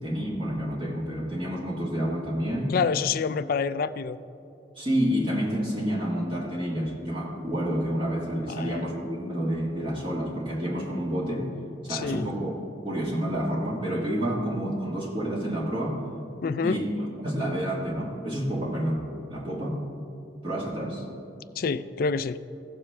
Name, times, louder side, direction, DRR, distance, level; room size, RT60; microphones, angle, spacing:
voice 1, 0.0-2.7 4.8-11.5 11.8-12.5 12.8-16.0 16.6-16.9 17.2-19.8 20.4-21.0, equal, 30° right, -5 dB, 1.6 m, -29 dB
voice 2, 2.7-4.2 8.5-8.8 11.9-12.3 16.4-16.9 21.6-22.4, left 5 dB, 55° left, 14 dB, 0.4 m, -27 dB
16.5 x 7.1 x 3.3 m, 2.8 s
head